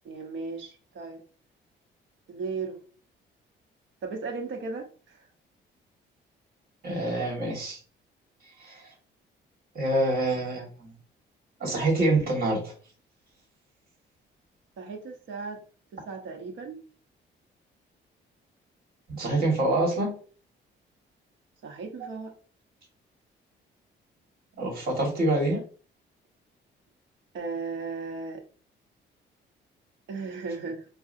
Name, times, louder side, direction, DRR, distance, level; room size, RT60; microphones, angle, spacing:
voice 1, 0.0-1.2 2.3-2.8 4.0-5.3 14.8-15.6 15.9-16.8 21.6-22.3 27.3-28.4 30.1-30.9, right 4 dB, 75° right, 2 dB, 1.0 m, -36 dB
voice 2, 6.8-7.8 8.6-8.8 9.7-10.9 11.6-12.7 19.1-20.1 24.6-25.6, right 2 dB, 50° right, 0 dB, 1.7 m, -26 dB
4.7 x 2.3 x 2.6 m, 0.40 s
cardioid pair, 90°, 20 cm